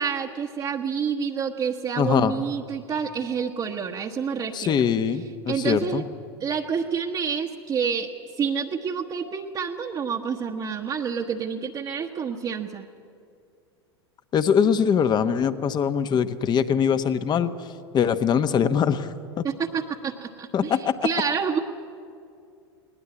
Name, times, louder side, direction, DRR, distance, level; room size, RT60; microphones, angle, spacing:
voice 1, 0.0-4.8 5.5-6.0 6.4-8.1 8.4-12.9 19.4-21.6, right 6 dB, 30° right, 1 dB, 1.2 m, -28 dB
voice 2, 2.0-2.3 4.5-6.0 14.3-17.5 17.9-19.1 19.4-19.5 20.5-20.9, left 7 dB, 30° left, 11 dB, 1.1 m, -22 dB
20.0 x 19.0 x 8.4 m, 2.4 s
hypercardioid pair, 90°, 14 cm